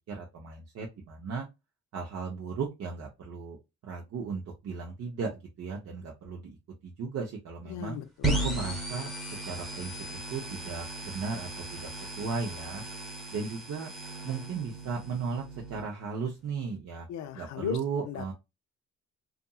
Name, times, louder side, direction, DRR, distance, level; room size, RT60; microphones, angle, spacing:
voice 1, 0.1-1.5 1.9-3.6 3.8-6.6 6.8-8.0 8.4-9.1 9.4-12.8 13.3-13.9 14.2-17.1 17.3-18.3, right 5 dB, 55° right, 0.7 m, -36 dB
voice 2, 7.7-8.5 17.1-17.8 18.1-18.3, left 10 dB, 65° left, 0.5 m, -37 dB
sound 1, 8.2-15.8, right 2 dB, ahead, 0.9 m, -36 dB
2.7 x 2.6 x 2.3 m
cardioid pair, 90°, 30 cm